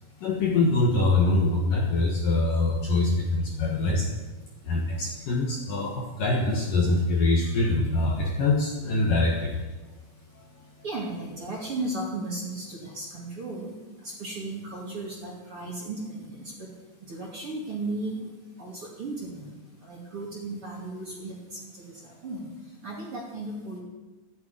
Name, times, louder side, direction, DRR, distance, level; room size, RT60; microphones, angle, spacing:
voice 1, 0.2-4.1 4.6-9.6 10.3-10.7, left 2 dB, 65° left, 0 dB, 2.4 m, -24 dB
voice 2, 10.8-13.7 14.0-16.7 17.1-18.2 18.6-19.5 19.8-22.5 22.8-23.8, right 2 dB, 35° right, -3 dB, 2.5 m, -35 dB
14.5 x 9.2 x 9.3 m, 1.2 s
omnidirectional pair, 5.5 m